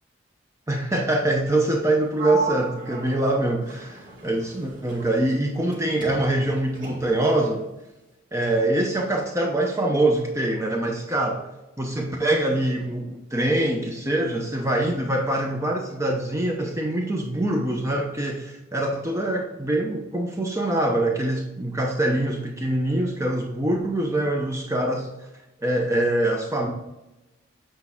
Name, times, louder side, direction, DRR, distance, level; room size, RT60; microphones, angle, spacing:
voice 1, 0.7-7.6 8.3-11.4 11.8-25.1 25.6-26.7, right 1 dB, 15° right, 1 dB, 0.7 m, -24 dB
Sliding door, 2.2-5.8 6.0-7.3, right 2 dB, 45° right, 2.3 m, -35 dB
8.4 x 5.4 x 3.5 m, 0.98 s
head